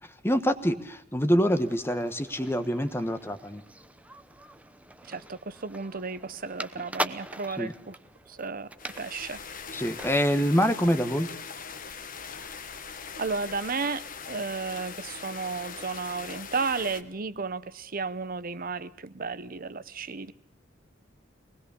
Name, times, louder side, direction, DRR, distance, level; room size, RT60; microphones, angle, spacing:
voice 1, 0.2-3.6 7.6-7.7 9.7-11.3, equal, 10° left, 1.2 m, -25 dB
sound 1, 1.4-10.3, right 1 dB, 5° right, 0.9 m, -41 dB
voice 2, 5.1-8.0 8.3-8.7 9.0-9.4 13.2-20.3, right 4 dB, 50° right, 0.9 m, -33 dB
sound 2, 8.8-17.0, left 6 dB, 45° left, 1.4 m, -41 dB
24.5 x 19.5 x 7.0 m
head